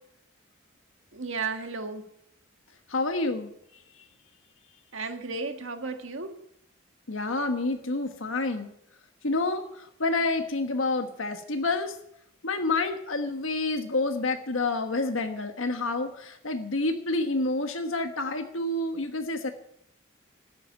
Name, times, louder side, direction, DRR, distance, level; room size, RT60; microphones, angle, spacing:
voice 1, 1.1-2.1 4.9-6.4, right 4 dB, 80° right, 6 dB, 1.8 m, -34 dB
voice 2, 2.9-3.5 7.1-8.7 9.2-9.6 10.0-11.9 12.4-19.5, left 2 dB, 85° left, 6 dB, 1.4 m, -28 dB
14.5 x 8.8 x 9.3 m, 0.73 s
head